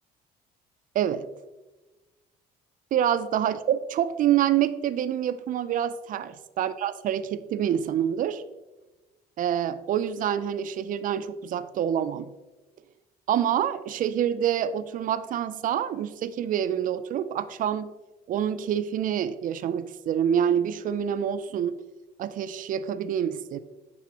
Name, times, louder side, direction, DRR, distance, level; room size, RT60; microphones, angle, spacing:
voice 1, 1.0-1.3 2.9-8.4 9.4-12.3 13.3-17.9 18.3-21.8 22.2-23.6, right 9 dB, 55° right, 12 dB, 0.4 m, -27 dB
10.0 x 4.2 x 2.9 m, 1.1 s
cardioid pair, 110°, 17 cm